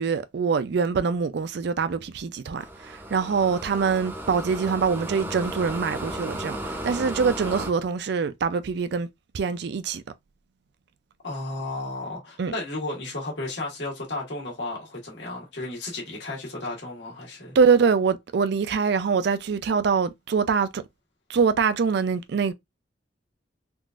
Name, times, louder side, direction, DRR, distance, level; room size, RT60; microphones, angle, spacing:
voice 1, 0.0-6.6 6.8-9.1 9.3-10.0 12.4-12.5 17.5-20.8 21.3-22.5, right 5 dB, 65° right, 0.4 m, -24 dB
sound 1, 2.6-7.7, right 1 dB, 10° right, 0.6 m, -34 dB
voice 2, 11.2-17.6, left 2 dB, 70° left, 1.5 m, -33 dB
3.7 x 2.4 x 2.4 m
head